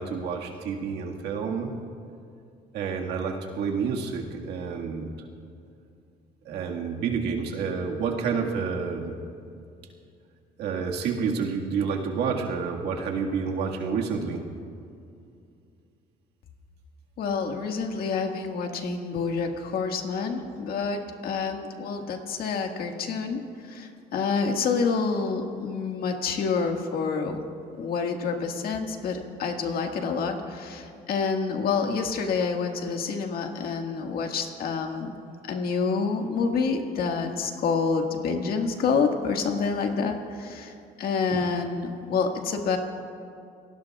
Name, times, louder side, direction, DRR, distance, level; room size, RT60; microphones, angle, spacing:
voice 1, 0.0-1.8 2.7-5.1 6.5-9.2 10.6-14.4, right 5 dB, 75° right, 0 dB, 1.8 m, -29 dB
voice 2, 17.2-27.4 27.8-35.1 35.5-42.8, left 5 dB, 65° left, 3 dB, 1.7 m, -28 dB
27.0 x 19.0 x 2.4 m, 2.5 s
cardioid pair, 110°, 17 cm